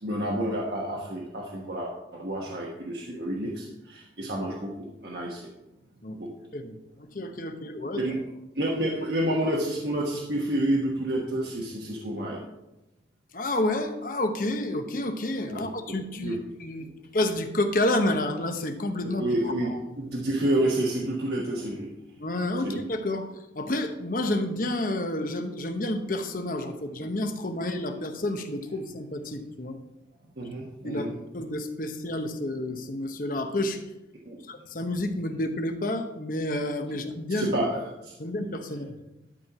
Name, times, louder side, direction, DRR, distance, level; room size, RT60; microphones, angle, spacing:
voice 1, 0.0-5.5 6.1-6.3 7.9-8.2 8.5-12.4 15.5-16.4 19.0-21.9 22.6-22.9 30.4-31.2 34.2-34.4 37.3-38.2, right 1 dB, 60° right, -2 dB, 1.2 m, -29 dB
voice 2, 6.5-8.0 13.3-19.8 22.2-29.8 30.8-31.1 31.3-33.8 34.5-37.5 38.2-38.9, left 1 dB, 45° left, 7 dB, 0.9 m, -30 dB
12.0 x 4.5 x 5.8 m, 0.94 s
head